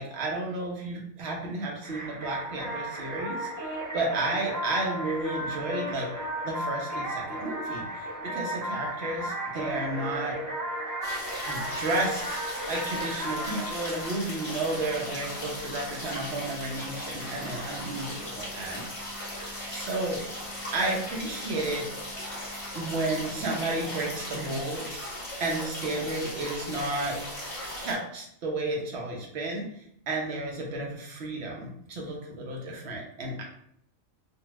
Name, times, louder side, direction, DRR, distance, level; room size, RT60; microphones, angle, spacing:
voice 1, 0.0-6.1 6.4-10.4 11.5-12.2 12.7-18.9 19.7-20.2 20.7-21.9 22.7-25.0 25.4-27.2 27.8-33.4, right 2 dB, 55° right, -1 dB, 0.9 m, -32 dB
sound 1, 1.8-15.3, right 1 dB, 30° right, 0.3 m, -35 dB
sound 2, 11.0-27.9, left 1 dB, 30° left, 0.8 m, -38 dB
2.6 x 2.3 x 2.9 m, 0.71 s
omnidirectional pair, 1.4 m